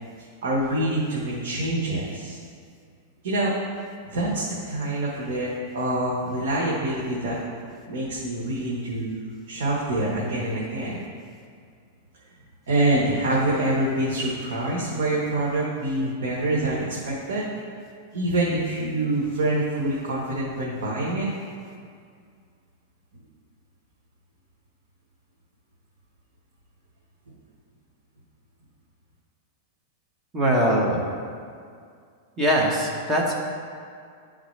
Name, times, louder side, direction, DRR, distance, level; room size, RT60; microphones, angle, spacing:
voice 1, 0.4-2.4 3.2-3.5 4.0-7.4 7.9-9.1 9.5-11.0 12.7-17.5 18.1-21.3, right 1 dB, 80° right, -5 dB, 1.1 m, -26 dB
voice 2, 30.3-31.0 32.4-33.3, equal, 15° right, -2 dB, 1.0 m, -21 dB
11.0 x 3.8 x 3.2 m, 2.2 s
supercardioid pair, 150°, 0 cm